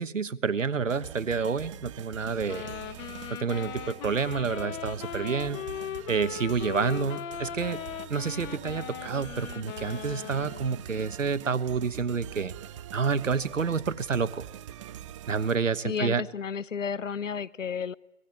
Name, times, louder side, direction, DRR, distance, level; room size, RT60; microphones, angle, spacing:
voice 1, 0.0-2.7 3.3-5.6 6.1-7.8 8.1-12.5 12.9-14.4 15.3-16.2, right 5 dB, 90° right, 14 dB, 1.3 m, -29 dB
sound 1, 0.9-15.9, right 11 dB, 25° right, 0.8 m, -44 dB
sound 2, 2.5-10.8, left 10 dB, 25° left, 1.5 m, -39 dB
voice 2, 15.8-17.9, left 6 dB, 90° left, 21 dB, 0.8 m, -32 dB
25.0 x 19.0 x 9.7 m, 1.0 s
hypercardioid pair, 145°, 37 cm